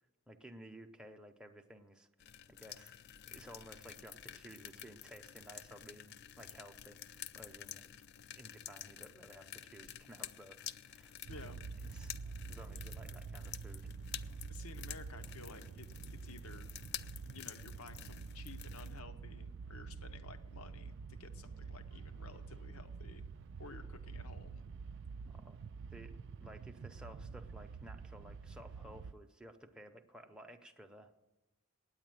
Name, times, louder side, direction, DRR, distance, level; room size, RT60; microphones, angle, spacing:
voice 1, 0.3-2.1 2.5-2.9 3.3-7.9 8.4-11.2 11.8-13.9 25.3-25.6 25.9-31.1, right 1 dB, 5° right, 4 dB, 0.7 m, -55 dB
sound 1, 2.2-19.0, left 11 dB, 50° left, 0.4 m, -50 dB
voice 2, 11.3-11.6 14.5-15.9 16.2-16.7 17.3-23.2 23.6-24.6, left 4 dB, 85° left, 10 dB, 0.9 m, -54 dB
sound 2, 11.3-29.1, right 5 dB, 55° right, 0.4 m, -47 dB
9.6 x 8.8 x 9.1 m, 1.0 s
head